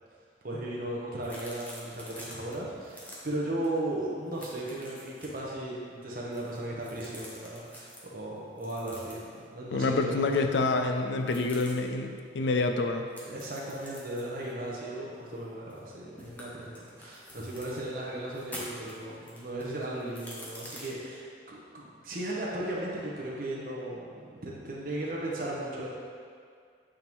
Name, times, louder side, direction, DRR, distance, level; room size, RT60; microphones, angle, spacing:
voice 1, 0.4-10.6 13.2-25.9, right 1 dB, 50° right, -5 dB, 1.0 m, -36 dB
sound 1, 1.2-2.5 2.8-3.2 3.6-3.8 4.1-5.4 6.1-8.0 8.6-9.4 11.2-11.7 13.1-15.9 16.2-17.8 18.3-20.9, equal, 10° left, 0.8 m, -47 dB
voice 2, 9.7-13.1, left 3 dB, 75° left, 5 dB, 0.4 m, -27 dB
8.5 x 3.6 x 3.0 m, 2.2 s
head